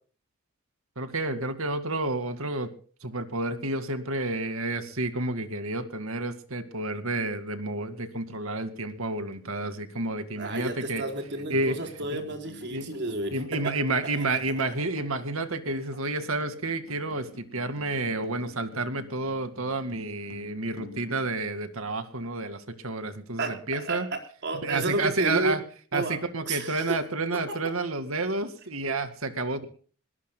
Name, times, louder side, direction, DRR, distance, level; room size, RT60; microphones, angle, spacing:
voice 1, 1.0-2.7 3.0-11.0 11.5-11.8 12.1-12.2 12.7-12.9 13.3-24.1 24.5-25.6 25.9-29.6, right 2 dB, 70° right, 9 dB, 2.2 m, -30 dB
sound 1, 8.2-22.4, left 2 dB, 80° left, 2.9 m, -51 dB
voice 2, 10.4-13.4 13.6-13.7 14.1-14.2 23.4-25.6 25.9-26.2 26.5-27.0, right 2 dB, 55° right, 4 dB, 4.5 m, -31 dB
21.5 x 19.5 x 2.3 m, 0.40 s
head